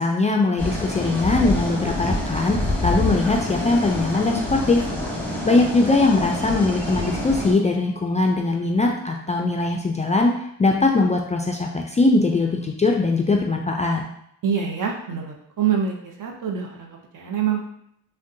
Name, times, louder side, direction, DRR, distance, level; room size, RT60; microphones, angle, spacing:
voice 1, 0.0-4.9 5.4-10.3 10.6-14.0, left 3 dB, 20° left, 1 dB, 0.3 m, -21 dB
sound 1, 0.6-7.5, left 1 dB, 5° left, 1.0 m, -27 dB
voice 2, 14.4-17.6, right 7 dB, 55° right, 2 dB, 0.7 m, -25 dB
3.4 x 2.2 x 2.7 m, 0.74 s
supercardioid pair, 55°, 39 cm